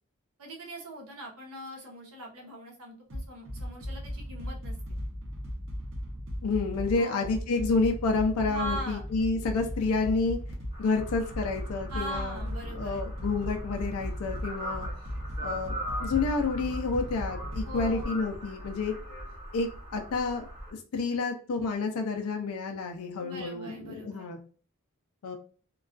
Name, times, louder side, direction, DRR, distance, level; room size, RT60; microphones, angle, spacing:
voice 1, 0.4-4.8 7.0-7.4 8.5-9.1 11.9-13.1 17.6-18.2 23.2-24.3, right 1 dB, 90° right, -1 dB, 0.8 m, -40 dB
sound 1, 3.1-18.0, equal, 55° right, 0.6 m, -37 dB
voice 2, 6.4-10.4 10.8-12.4 12.7-14.9 15.4-15.7 16.0-18.9 19.5-20.5 20.9-24.4 25.2-25.4, left 4 dB, 90° left, 4 dB, 0.4 m, -29 dB
sound 2, 10.7-20.7, equal, 25° right, 0.8 m, -41 dB
2.3 x 2.3 x 2.3 m, 0.41 s
head